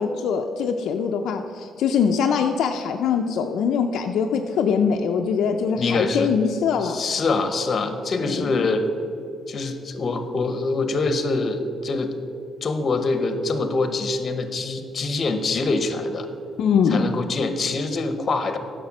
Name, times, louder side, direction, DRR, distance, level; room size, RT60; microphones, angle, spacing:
voice 1, 0.0-7.0 8.2-8.6 16.6-17.1, left 6 dB, 75° left, 4 dB, 0.5 m, -22 dB
voice 2, 5.7-6.3 6.8-8.8 9.5-12.1 12.6-16.3 16.9-18.6, left 3 dB, 45° left, 8 dB, 1.0 m, -24 dB
9.5 x 6.7 x 6.0 m, 2.5 s
cardioid pair, 90°, 0 cm